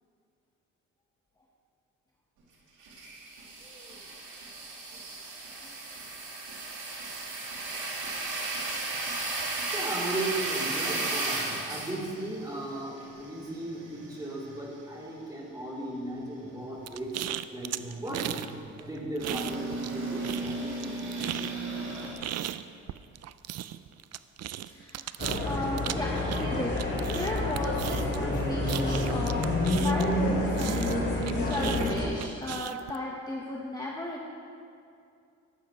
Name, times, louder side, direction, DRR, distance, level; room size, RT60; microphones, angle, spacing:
sound 1, 2.8-14.6 15.0-15.1 19.2-22.1, right 2 dB, 85° right, 2.7 m, -35 dB
voice 1, 3.6-4.0 5.6-5.7 7.7-7.8 24.7-25.1 25.4-26.1 26.4-26.8 27.1-34.3, left 1 dB, 15° left, -2 dB, 1.2 m, -35 dB
voice 2, 9.7-17.1 17.5-21.0, right 1 dB, 15° right, -5 dB, 3.2 m, -36 dB
sound 2, 16.9-18.5 18.8-20.0 20.2-30.2 30.6-33.0, right 12 dB, 60° right, 0.4 m, -36 dB
sound 3, 25.2-32.0, left 1 dB, 35° left, 2.6 m, -28 dB
14.0 x 11.5 x 3.1 m, 2.4 s
cardioid pair, 90°, 30 cm